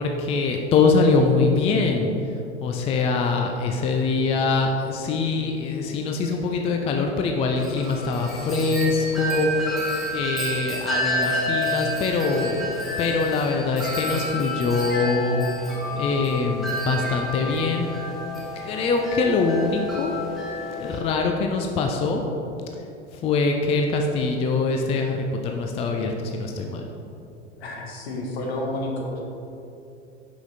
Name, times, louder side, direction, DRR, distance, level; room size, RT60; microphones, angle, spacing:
voice 1, 0.0-12.7 13.0-15.4 15.9-17.9 18.6-20.1 20.7-22.2 22.7-22.8 23.1-26.9, left 4 dB, 20° left, 3 dB, 0.4 m, -23 dB
Wind chime, 7.6-21.0, left 1 dB, ahead, 1.5 m, -30 dB
voice 2, 27.6-29.1, left 1 dB, 60° left, 0 dB, 1.4 m, -30 dB
5.7 x 5.6 x 4.0 m, 2.7 s
figure-of-eight pair, 80°, 34 cm